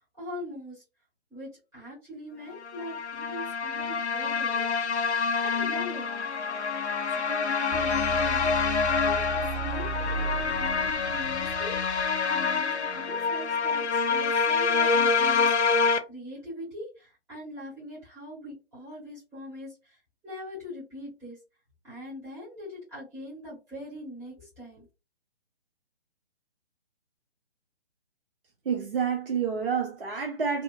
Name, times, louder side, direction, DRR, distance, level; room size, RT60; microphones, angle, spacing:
voice 1, 0.2-0.8 1.3-4.7 5.4-6.1 7.1-9.9 10.5-11.7 12.2-21.4 21.8-24.9, left 1 dB, 10° right, 1.5 m, -42 dB
sound 1, 2.6-16.0, left 5 dB, 85° left, 0.5 m, -27 dB
sound 2, 7.7-12.6, right 5 dB, 35° right, 1.4 m, -36 dB
voice 2, 28.6-30.6, right 6 dB, 55° right, 0.7 m, -28 dB
2.8 x 2.4 x 2.2 m
figure-of-eight pair, 135°, 33 cm